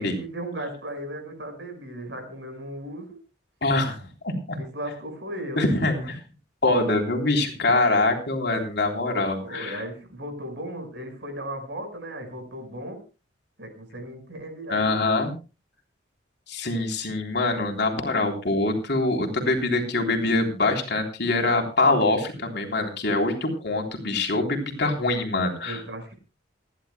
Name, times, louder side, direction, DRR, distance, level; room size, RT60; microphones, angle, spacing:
voice 1, 0.0-3.2 4.6-5.6 9.0-13.0 13.6-15.1 25.6-26.2, right 1 dB, 60° right, 6 dB, 5.5 m, -36 dB
voice 2, 3.6-4.6 5.6-6.2 6.6-9.8 14.7-15.3 16.5-25.8, left 2 dB, 55° left, 2 dB, 3.5 m, -24 dB
28.0 x 11.0 x 2.2 m, 0.33 s
head